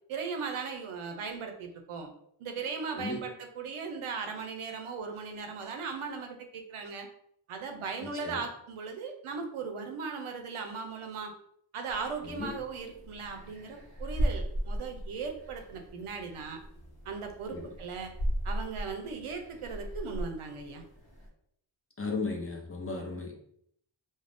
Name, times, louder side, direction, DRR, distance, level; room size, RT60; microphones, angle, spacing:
voice 1, 0.1-2.1 2.4-7.1 7.5-11.3 11.7-16.6 17.1-18.1 18.4-20.8, right 5 dB, 80° right, 5 dB, 0.6 m, -38 dB
voice 2, 8.0-8.4 12.2-12.5 17.5-17.6 22.0-23.3, left 3 dB, 25° left, 0 dB, 0.6 m, -35 dB
sound 1, 11.9-21.3, equal, 50° left, 1.1 m, -37 dB
2.5 x 2.1 x 3.3 m, 0.70 s
cardioid pair, 50°, 50 cm